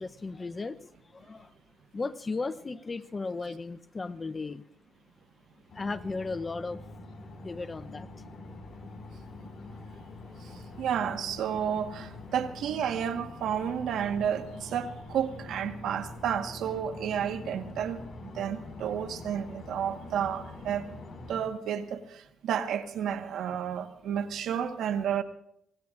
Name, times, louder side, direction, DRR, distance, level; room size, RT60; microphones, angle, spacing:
voice 1, 0.0-1.5 1.9-4.6 5.7-6.8 7.2-8.1, left 3 dB, 30° left, 14 dB, 0.7 m, -36 dB
sound 1, 5.7-21.4, left 2 dB, 45° left, 5.4 m, -45 dB
voice 2, 10.4-18.0 18.3-20.9 21.3-25.2, right 8 dB, 75° right, 7 dB, 1.4 m, -31 dB
24.5 x 19.0 x 2.5 m, 0.75 s
cardioid pair, 90°, 0 cm